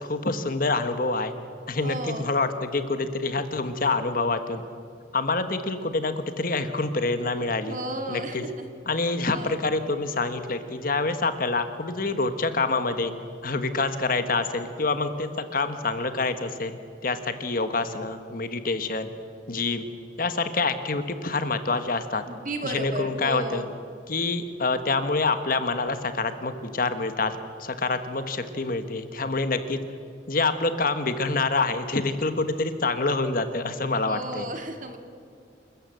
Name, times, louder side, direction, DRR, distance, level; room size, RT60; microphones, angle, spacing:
voice 1, 0.0-1.3 1.7-4.6 5.1-7.8 8.1-8.4 8.9-13.1 13.4-19.1 19.5-19.8 20.2-22.2 22.6-23.6 24.1-29.8 30.3-34.4, left 3 dB, 50° left, 9 dB, 1.3 m, -26 dB
voice 2, 1.8-2.3 7.7-8.7 9.3-9.6 22.2-23.7 34.1-35.0, right 1 dB, 45° right, 5 dB, 2.1 m, -34 dB
27.5 x 14.0 x 7.8 m, 2.4 s
head